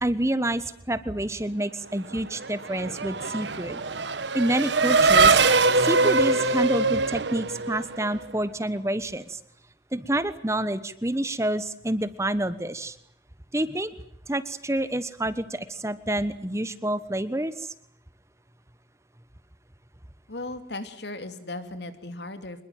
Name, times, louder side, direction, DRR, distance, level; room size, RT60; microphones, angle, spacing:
voice 1, 0.0-3.8 4.3-5.4 5.8-9.4 9.9-13.0 13.5-13.9 14.3-17.7, right 1 dB, 15° right, 14 dB, 1.2 m, -28 dB
Race car auto racing / Accelerating revving vroom, 2.2-8.2, right 3 dB, 85° right, 1.4 m, -22 dB
voice 2, 20.3-22.6, left 2 dB, 75° left, 10 dB, 2.9 m, -36 dB
26.0 x 21.5 x 9.3 m, 0.67 s
head